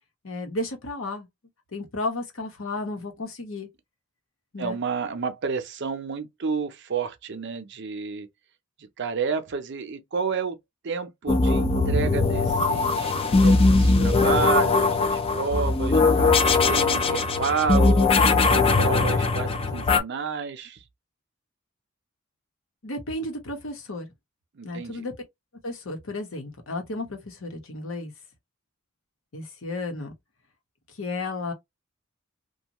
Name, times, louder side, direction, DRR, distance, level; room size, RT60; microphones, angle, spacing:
voice 1, 0.2-1.3 1.7-3.7 4.5-4.8 22.8-24.1 24.6-25.1 25.6-28.1 29.3-30.1 30.9-31.5, left 2 dB, 70° left, 0.9 m, -33 dB
voice 2, 4.6-8.3 8.8-10.6 10.8-13.1 13.4-16.0 16.5-18.1 18.5-20.8 24.5-25.0, right 5 dB, 60° right, 0.6 m, -30 dB
sound 1, 11.3-20.0, left 3 dB, 30° left, 0.4 m, -20 dB
2.6 x 2.3 x 2.9 m
head